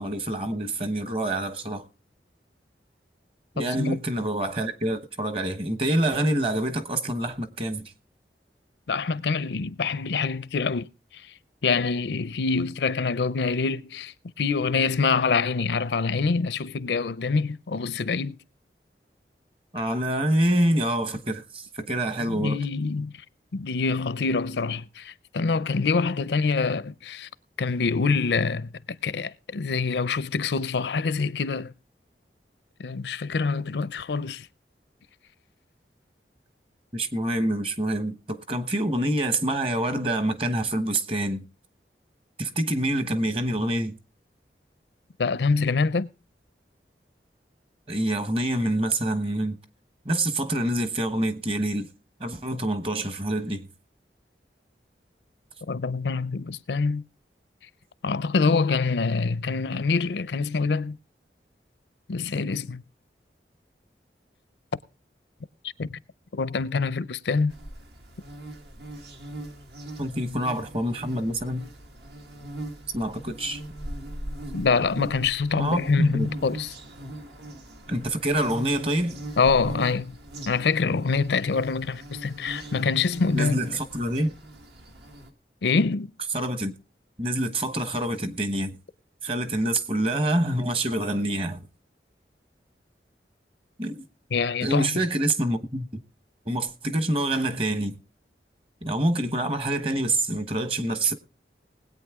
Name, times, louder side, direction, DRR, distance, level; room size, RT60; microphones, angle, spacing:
voice 1, 0.0-1.8 3.5-7.8 19.7-22.6 36.9-41.4 42.4-43.9 47.9-49.6 50.0-51.9 52.2-53.7 70.0-71.7 72.9-73.6 75.6-76.3 77.9-79.2 83.3-84.3 86.3-86.7 87.2-88.8 89.2-91.6 93.8-94.0 94.6-95.9 96.5-98.0 98.8-101.1, right 1 dB, 30° right, 1.0 m, -26 dB
voice 2, 3.6-4.0 8.9-10.9 11.1-11.2 11.6-18.4 22.2-23.1 23.5-27.3 27.6-31.7 32.8-34.5 45.2-46.1 55.7-57.0 58.0-61.0 62.1-62.8 65.8-66.0 66.3-67.5 74.5-76.7 79.4-80.2 80.5-83.6 85.6-86.1 94.3-95.0, left 4 dB, 80° left, 0.5 m, -25 dB
sound 1, 67.5-85.3, right 1 dB, 75° right, 1.6 m, -40 dB
20.0 x 8.6 x 3.6 m
head